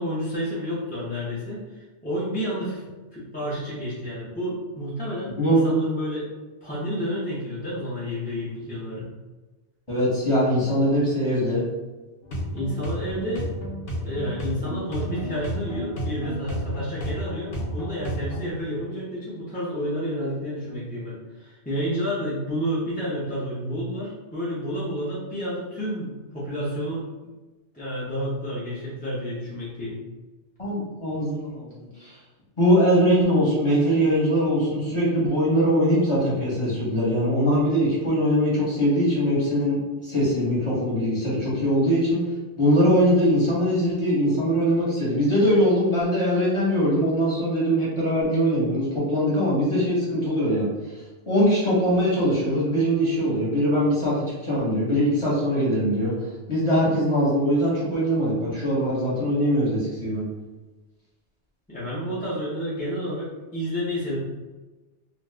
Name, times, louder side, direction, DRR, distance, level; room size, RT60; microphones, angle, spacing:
voice 1, 0.0-2.8 3.1-6.3 6.6-9.1 12.5-13.5 14.0-27.1 27.7-30.0 61.7-64.2, equal, 10° left, -9 dB, 0.6 m, -30 dB
voice 2, 5.4-5.7 9.9-11.6 30.6-32.2 32.6-42.2 42.6-50.7 51.2-56.1 56.5-60.2, equal, 25° left, -8 dB, 1.2 m, -22 dB
sound 1, 12.2-18.5, equal, 65° left, 0.9 m, -32 dB
2.6 x 2.4 x 3.3 m, 1.2 s
omnidirectional pair, 1.2 m